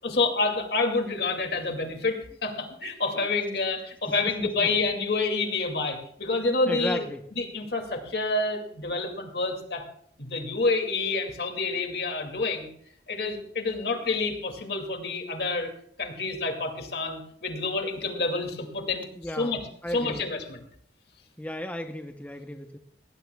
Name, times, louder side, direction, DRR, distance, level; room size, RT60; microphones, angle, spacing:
voice 1, 0.0-7.0 7.4-9.8 10.2-12.7 13.1-15.7 16.0-20.6, left 3 dB, 65° left, 4 dB, 2.4 m, -28 dB
voice 2, 6.7-7.2 19.2-20.2 21.4-22.8, left 1 dB, 10° left, 5 dB, 0.8 m, -34 dB
19.0 x 16.5 x 2.3 m, 0.67 s
head